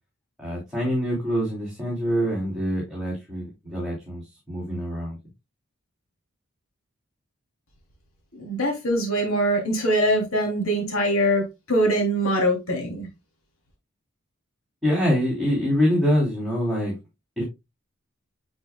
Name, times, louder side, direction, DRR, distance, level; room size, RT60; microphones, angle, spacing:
voice 1, 0.4-4.2 4.5-5.2 14.8-16.9 17.4-17.5, equal, ahead, 3.2 m, -25 dB
voice 2, 8.4-13.1, equal, 85° left, 3.1 m, -23 dB
9.7 x 6.1 x 2.2 m
head